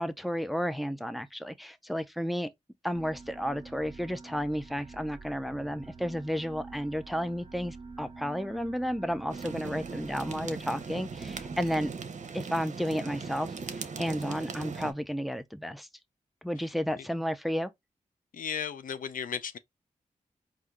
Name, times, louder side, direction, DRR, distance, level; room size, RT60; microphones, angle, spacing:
voice 1, 0.0-2.5 2.8-11.9 12.3-15.9 16.4-17.7, equal, ahead, 0.5 m, -32 dB
sound 1, 2.9-11.9, right 4 dB, 45° right, 1.1 m, -47 dB
sound 2, 9.3-14.9, right 5 dB, 65° right, 0.7 m, -39 dB
voice 2, 18.3-19.6, left 7 dB, 85° left, 0.5 m, -35 dB
4.5 x 2.5 x 3.7 m
wide cardioid pair, 75°, 14 cm